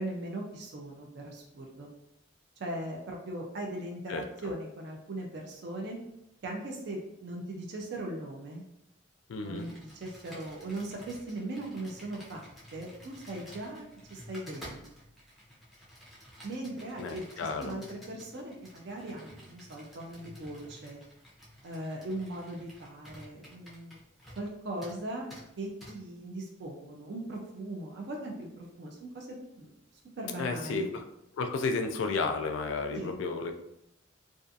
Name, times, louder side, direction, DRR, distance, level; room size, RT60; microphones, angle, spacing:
voice 1, 0.0-1.9 2.6-6.0 6.4-8.6 9.4-13.8 14.1-14.9 16.4-21.0 21.6-24.0 24.4-29.7 30.2-30.8 32.9-33.2, right 1 dB, 55° right, 1 dB, 0.4 m, -39 dB
voice 2, 9.3-9.7 17.0-17.8 30.4-30.8 31.4-33.5, left 4 dB, 75° left, 6 dB, 0.3 m, -32 dB
Computer keyboard, 9.5-24.5 24.8-25.0 25.3-25.4 25.8-25.9, equal, ahead, 0.5 m, -52 dB
2.4 x 2.4 x 2.6 m, 0.83 s
head